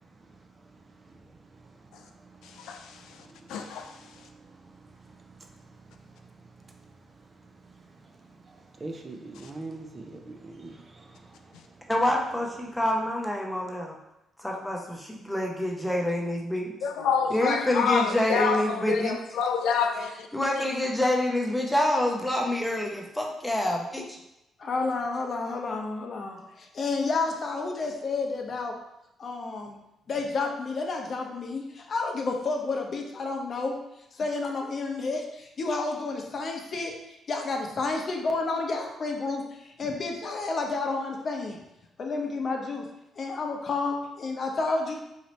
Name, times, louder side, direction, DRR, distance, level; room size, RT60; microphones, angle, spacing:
voice 1, 2.6-3.0 3.5-4.0 16.8-20.3, left 6 dB, 85° left, 5 dB, 0.3 m, -27 dB
voice 2, 8.8-11.3, right 2 dB, 35° right, 4 dB, 0.5 m, -41 dB
voice 3, 11.9-14.0 14.4-16.7 17.3-19.1 20.3-24.0, left 1 dB, 5° left, -1 dB, 0.7 m, -27 dB
voice 4, 24.6-28.7 29.2-29.8 30.1-33.7 34.1-36.9 37.3-41.6 42.0-42.8 43.2-45.0, left 3 dB, 50° left, 2 dB, 0.7 m, -30 dB
4.1 x 2.7 x 3.1 m, 0.87 s
cardioid pair, 90°, 0 cm